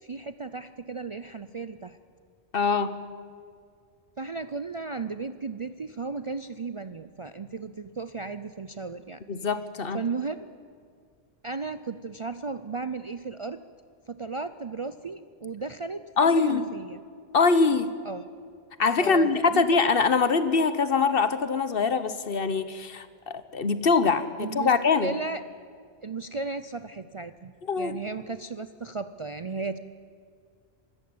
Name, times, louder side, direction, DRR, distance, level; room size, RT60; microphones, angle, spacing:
voice 1, 0.0-2.0 4.2-9.2 9.9-10.5 11.4-13.6 14.1-17.0 18.0-18.2 19.0-19.8 24.4-24.7 25.0-25.4 26.0-29.8, right 4 dB, 40° right, 10 dB, 0.5 m, -35 dB
voice 2, 2.5-3.0 9.3-10.0 16.2-16.7 17.3-17.9 18.8-25.2 27.7-28.0, left 4 dB, 55° left, 12 dB, 1.2 m, -23 dB
25.0 x 13.5 x 8.7 m, 2.2 s
omnidirectional pair, 1.1 m